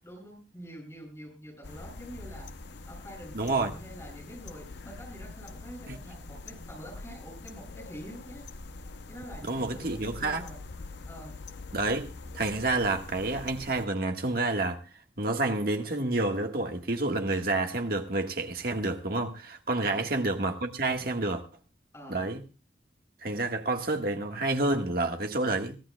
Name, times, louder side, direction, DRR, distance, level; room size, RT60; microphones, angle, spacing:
voice 1, 0.0-2.5 2.8-8.4 9.1-10.6 11.0-11.4 19.8-20.1 21.9-22.3, equal, 15° left, 7.2 m, -46 dB
sound 1, 1.6-13.9, left 3 dB, 65° left, 0.8 m, -44 dB
voice 2, 3.3-3.7 5.9-6.0 9.5-10.4 11.7-14.8 15.2-21.4 22.1-22.4 23.2-25.8, right 2 dB, 55° right, 1.5 m, -29 dB
23.0 x 14.5 x 2.3 m
head